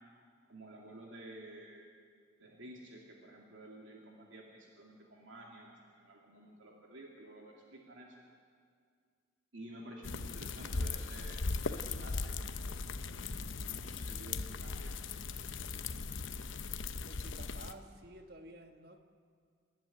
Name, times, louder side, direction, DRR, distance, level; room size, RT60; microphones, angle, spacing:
voice 1, 0.5-1.9 2.4-8.2 9.5-12.8 13.7-15.0, right 1 dB, 70° right, -1 dB, 2.6 m, -52 dB
sound 1, 10.0-17.7, left 4 dB, 75° left, 0.9 m, -38 dB
voice 2, 17.1-19.0, right 1 dB, 50° right, 6 dB, 1.5 m, -52 dB
26.0 x 11.0 x 9.7 m, 2.1 s
head